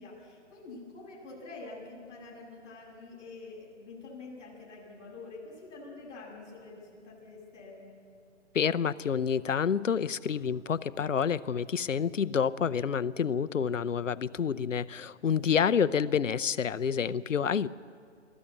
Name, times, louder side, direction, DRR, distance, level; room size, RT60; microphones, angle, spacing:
voice 1, 0.0-8.0, left 3 dB, 25° left, -7 dB, 7.4 m, -47 dB
voice 2, 8.5-17.7, left 7 dB, 85° left, 16 dB, 0.8 m, -28 dB
22.5 x 14.0 x 8.5 m, 2.2 s
hypercardioid pair, 145°, 37 cm